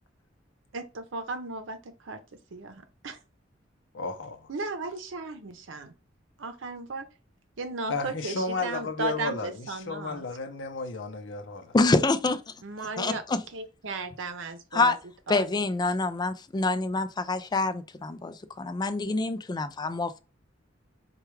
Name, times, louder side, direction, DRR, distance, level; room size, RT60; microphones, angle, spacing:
voice 1, 0.7-3.2 4.5-5.9 6.4-7.1 7.6-10.3 12.6-13.2 13.5-14.9 15.3-15.5, right 3 dB, 85° right, 0.7 m, -35 dB
voice 2, 3.9-4.5 7.9-11.7, left 3 dB, 75° left, 0.7 m, -33 dB
voice 3, 11.7-12.4 13.0-13.4 14.7-15.0 15.3-20.2, left 3 dB, 20° left, 0.3 m, -26 dB
4.5 x 2.3 x 3.1 m
head